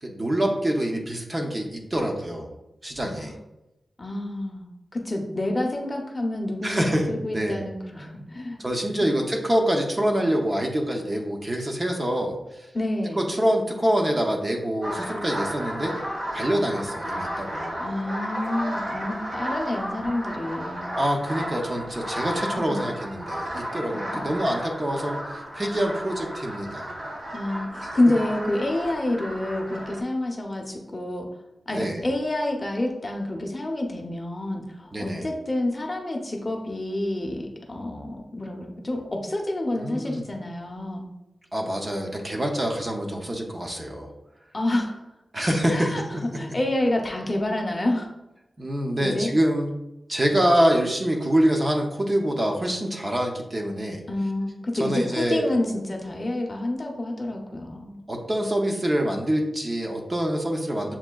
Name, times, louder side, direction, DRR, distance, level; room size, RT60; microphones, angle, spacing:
voice 1, 0.0-2.5 2.8-3.3 6.6-7.6 8.6-12.7 13.2-16.0 16.3-17.8 20.9-26.9 27.8-27.9 31.7-32.0 34.9-35.3 39.7-40.2 41.5-44.1 45.3-46.4 48.6-49.7 50.1-54.0 54.8-55.5 58.1-61.0, right 1 dB, 25° right, 1 dB, 0.5 m, -25 dB
voice 2, 4.0-8.6 12.7-13.3 17.8-20.9 22.6-22.9 24.1-24.4 27.3-31.3 31.7-41.0 44.5-45.0 45.7-46.0 46.3-48.1 49.0-49.3 54.1-58.0, left 1 dB, 25° left, 1 dB, 0.6 m, -28 dB
sound 1, 14.8-30.0, equal, 60° right, 1.1 m, -33 dB
7.1 x 2.6 x 2.2 m, 0.92 s
wide cardioid pair, 150°, 0 cm